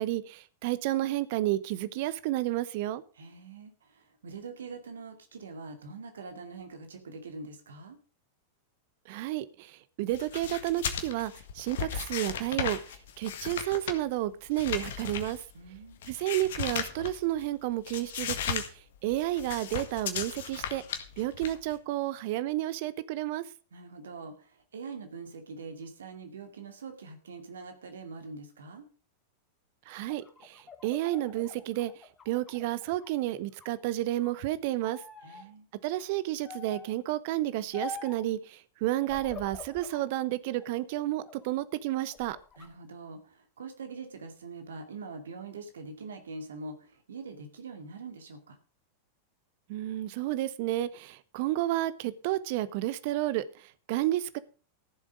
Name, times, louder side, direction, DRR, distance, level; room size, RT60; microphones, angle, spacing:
voice 1, 0.0-3.0 9.1-9.7 10.0-12.8 13.2-15.4 16.1-18.6 19.0-20.8 21.2-23.4 29.9-31.9 32.3-35.0 35.8-42.4 49.7-53.4 53.9-54.4, right 15 dB, 50° right, 0.9 m, -31 dB
voice 2, 3.1-8.0 15.5-16.0 23.7-28.9 35.2-35.7 42.6-48.6, right 4 dB, 65° right, 2.4 m, -44 dB
sound 1, 10.1-17.5 17.8-18.7 18.9-21.8, left 8 dB, 60° left, 1.7 m, -36 dB
sound 2, 29.9-33.2 33.5-34.4 34.8-35.5 36.4-37.0 37.7-38.3 39.0-40.1 40.6-41.5 42.0-42.7, left 3 dB, 20° left, 2.2 m, -45 dB
14.5 x 7.4 x 5.1 m
figure-of-eight pair, 90°, 0 cm